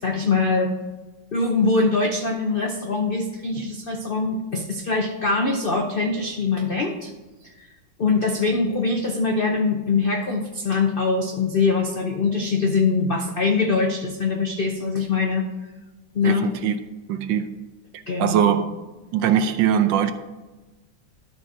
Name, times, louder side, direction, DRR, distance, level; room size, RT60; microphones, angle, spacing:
voice 1, 0.0-0.7 1.3-7.1 8.0-15.4 16.1-16.5 18.1-18.6, left 4 dB, 75° left, 2 dB, 0.5 m, -23 dB
voice 2, 16.2-16.7 17.1-17.5 18.2-18.6 19.1-20.1, right 9 dB, 80° right, 10 dB, 1.3 m, -21 dB
12.0 x 4.2 x 4.7 m, 1.2 s
omnidirectional pair, 2.0 m